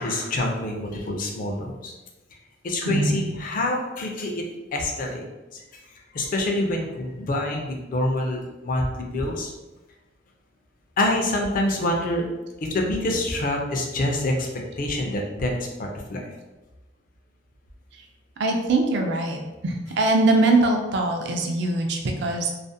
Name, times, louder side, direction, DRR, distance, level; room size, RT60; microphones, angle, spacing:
voice 1, 0.0-1.9 2.6-4.4 4.7-5.3 6.1-9.5 11.0-12.2 12.6-16.2, left 1 dB, 45° left, 1 dB, 0.4 m, -26 dB
voice 2, 2.8-3.2 18.4-22.5, right 2 dB, 65° right, 3 dB, 0.4 m, -22 dB
2.4 x 2.0 x 2.6 m, 1.1 s
head